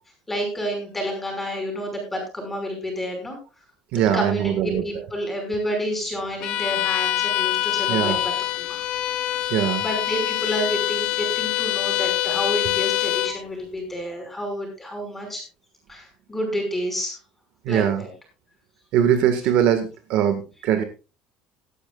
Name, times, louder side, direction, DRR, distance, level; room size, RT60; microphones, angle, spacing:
voice 1, 0.3-3.4 3.9-8.2 8.6-8.8 9.3-9.4 9.8-15.4 15.9-17.2 17.7-18.1, equal, 10° left, 3 dB, 5.6 m, -29 dB
voice 2, 3.9-4.8 7.9-8.2 9.5-9.8 17.6-18.0 18.9-20.8, right 9 dB, 55° right, 8 dB, 1.8 m, -21 dB
Bowed string instrument, 6.4-13.4, left 15 dB, 50° left, 0.8 m, -25 dB
17.5 x 12.5 x 2.5 m, 0.31 s
cardioid pair, 175°, 2 cm